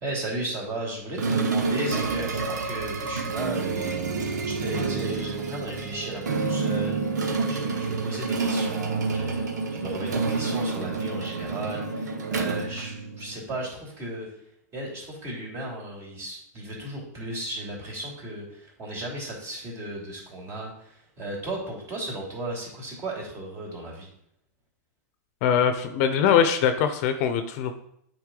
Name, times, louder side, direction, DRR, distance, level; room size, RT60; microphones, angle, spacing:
voice 1, 0.0-4.0 4.5-7.0 7.5-14.3 14.7-24.1, right 1 dB, 30° right, -2 dB, 2.8 m, -35 dB
sound 1, 1.2-13.5, right 4 dB, 80° right, 1.0 m, -28 dB
voice 2, 25.4-27.7, left 8 dB, 50° left, 8 dB, 0.8 m, -22 dB
8.7 x 4.3 x 3.9 m, 0.74 s
hypercardioid pair, 120°, 9 cm